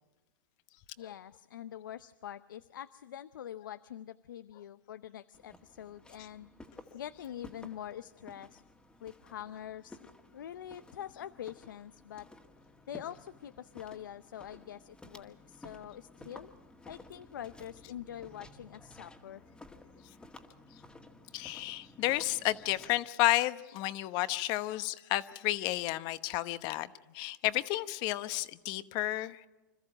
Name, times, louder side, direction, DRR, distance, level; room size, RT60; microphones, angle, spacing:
voice 1, 1.0-6.5 6.9-8.6 9.0-10.0 10.3-12.3 12.9-16.5 16.9-19.4, left 10 dB, 80° left, 13 dB, 0.6 m, -45 dB
Walk footsteps, 5.3-23.0, left 2 dB, 10° left, 1.8 m, -54 dB
voice 2, 21.3-26.9 27.1-29.5, left 17 dB, 45° left, 14 dB, 1.0 m, -31 dB
26.5 x 14.0 x 7.7 m, 1.2 s
hypercardioid pair, 125°, 11 cm